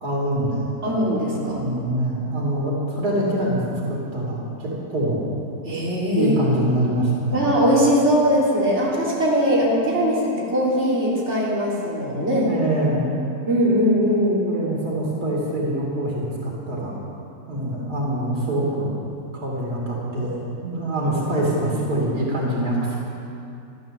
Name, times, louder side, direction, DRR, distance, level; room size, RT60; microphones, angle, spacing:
voice 1, 0.0-0.7 1.5-3.6 3.9-5.3 6.1-7.5 12.4-13.1 14.5-17.0 17.5-18.9 19.3-23.0, right 1 dB, 90° right, -3 dB, 3.3 m, -24 dB
voice 2, 0.8-1.6 5.6-6.3 7.3-12.5 13.5-14.5, equal, 45° right, -6 dB, 3.6 m, -20 dB
14.0 x 12.5 x 7.0 m, 2.6 s
omnidirectional pair, 1.6 m